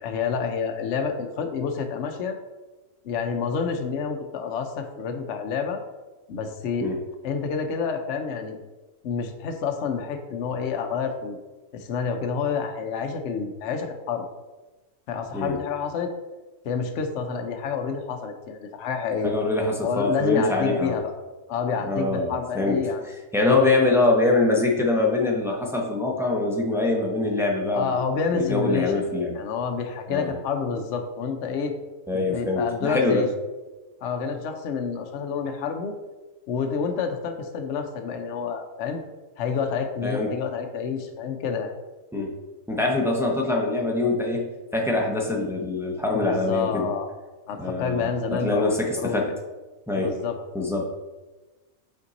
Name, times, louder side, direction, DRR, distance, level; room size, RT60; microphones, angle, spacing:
voice 1, 0.0-2.4 3.0-5.8 6.3-6.9 7.2-8.6 9.0-11.4 11.7-14.2 15.1-16.1 16.6-19.3 19.8-21.1 21.5-23.0 23.5-23.7 24.1-24.2 27.7-31.7 32.1-33.3 34.0-35.9 36.5-39.0 39.4-41.7 46.1-47.1 47.5-49.2 50.0-50.4, left 6 dB, 65° left, 5 dB, 0.8 m, -28 dB
voice 2, 19.2-21.0 21.8-22.8 23.3-28.0 28.3-29.3 30.1-30.3 32.1-33.3 40.0-40.3 42.1-42.3 42.7-46.9 47.6-49.3 49.9-50.1 50.5-50.9, left 2 dB, 5° right, -1 dB, 0.4 m, -24 dB
5.5 x 4.4 x 4.0 m, 1.2 s
omnidirectional pair, 1.4 m